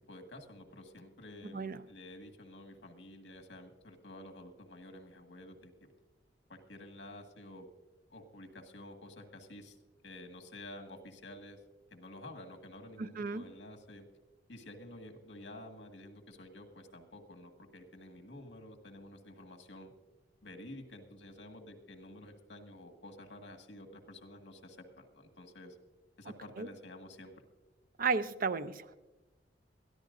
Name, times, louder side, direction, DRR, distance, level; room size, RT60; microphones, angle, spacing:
voice 1, 0.1-5.9 6.5-7.7 8.1-9.8 10.0-11.6 11.9-14.1 14.5-19.9 20.4-25.8 26.2-27.4, left 1 dB, 75° left, 4 dB, 1.8 m, -50 dB
voice 2, 1.5-1.8 13.0-13.4 26.6-26.7 28.0-29.0, right 4 dB, 50° right, 11 dB, 0.6 m, -33 dB
21.5 x 14.0 x 2.6 m, 1.1 s
head